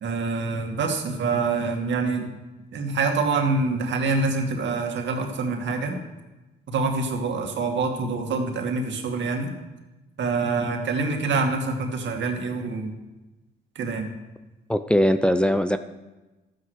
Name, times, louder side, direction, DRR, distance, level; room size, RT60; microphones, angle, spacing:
voice 1, 0.0-2.3 2.7-6.0 6.7-9.5 10.2-12.9 13.8-14.1, right 3 dB, 65° right, 3 dB, 2.3 m, -26 dB
voice 2, 14.7-15.8, equal, 5° left, 8 dB, 0.7 m, -20 dB
12.5 x 9.6 x 6.5 m, 1.1 s
cardioid pair, 90°, 20 cm